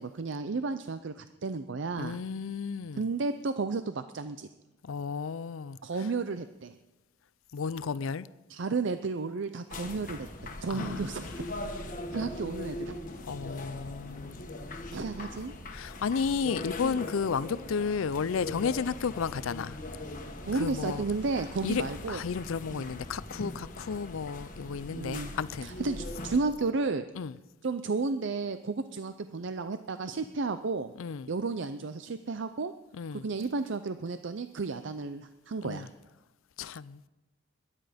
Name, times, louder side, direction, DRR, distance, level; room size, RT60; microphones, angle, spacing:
voice 1, 0.0-2.2 2.9-4.5 5.8-6.8 8.5-10.3 10.6-11.5 12.1-13.0 14.9-15.5 20.4-22.2 22.7-22.9 24.9-25.3 25.6-27.0 27.6-30.9 31.3-32.7 33.1-35.9, right 4 dB, 60° right, 0.5 m, -32 dB
voice 2, 2.0-3.1 4.8-5.8 7.5-8.3 10.7-11.0 13.2-14.4 15.7-19.8 20.5-21.0 21.6-25.7 27.2-27.3 31.0-31.3 33.0-33.2 35.6-35.9 36.6-37.1, left 5 dB, 80° left, 0.5 m, -33 dB
sound 1, 9.7-26.4, left 1 dB, 40° left, 1.5 m, -40 dB
22.0 x 10.0 x 5.1 m
head